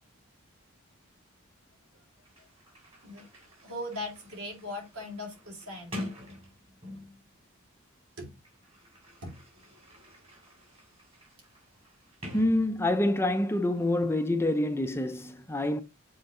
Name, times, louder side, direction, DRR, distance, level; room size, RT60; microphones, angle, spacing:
Sliding door, 1.9-2.0 2.2-7.3 8.2-13.2, left 1 dB, 30° right, 3.1 m, -46 dB
voice 1, 3.6-6.0 8.2-8.4 9.2-9.4, left 1 dB, 85° right, 3.0 m, -39 dB
voice 2, 12.3-15.8, left 1 dB, 10° left, 0.5 m, -27 dB
7.6 x 3.9 x 3.7 m
head